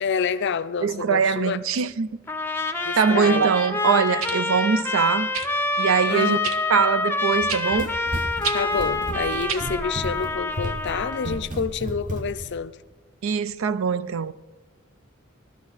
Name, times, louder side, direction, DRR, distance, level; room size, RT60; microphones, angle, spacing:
voice 1, 0.0-1.6 2.8-3.5 6.1-6.5 8.5-12.8, left 6 dB, 55° left, 0.5 m, -28 dB
voice 2, 0.8-2.1 3.0-5.3 5.8-6.4 6.7-7.9 13.2-14.3, right 6 dB, 65° right, 0.4 m, -22 dB
Trumpet, 2.3-11.4, left 2 dB, 10° left, 0.6 m, -27 dB
sound 1, 3.1-3.2 4.2-4.4 5.3-5.5 6.4-6.6 7.5-7.7 8.4-8.6 9.5-9.7 10.6-10.7, right 6 dB, 90° right, 0.8 m, -29 dB
Run, 7.3-12.6, right 1 dB, 40° right, 0.9 m, -33 dB
16.5 x 12.5 x 4.0 m
head